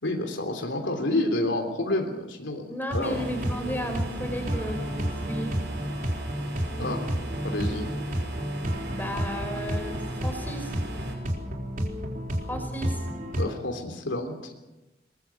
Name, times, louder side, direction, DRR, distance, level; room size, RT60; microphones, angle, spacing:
voice 1, 0.0-3.1 6.8-7.0 7.4-7.9 13.4-14.5, left 1 dB, 90° left, 4 dB, 3.4 m, -29 dB
voice 2, 2.7-5.5 8.9-10.7 12.5-13.1, equal, 10° left, 5 dB, 5.0 m, -34 dB
sound 1, 2.9-13.5, equal, 45° right, 3.8 m, -31 dB
sound 2, 3.0-11.1, right 2 dB, 75° right, 6.8 m, -40 dB
22.5 x 21.0 x 7.2 m, 1.0 s
head